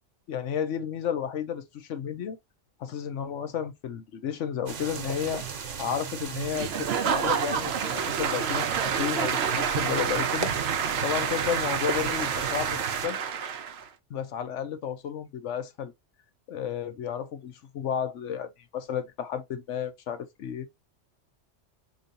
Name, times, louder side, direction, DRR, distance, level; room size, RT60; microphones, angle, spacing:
voice 1, 0.3-2.4 2.8-5.5 5.8-10.5 11.0-13.2 14.1-15.9 16.5-20.7, left 8 dB, 85° left, 1.1 m, -32 dB
sound 1, 4.7-13.1, right 7 dB, 85° right, 1.1 m, -35 dB
Applause / Crowd, 6.5-13.9, right 7 dB, 65° right, 0.8 m, -29 dB
3.9 x 3.1 x 2.7 m
omnidirectional pair, 1.2 m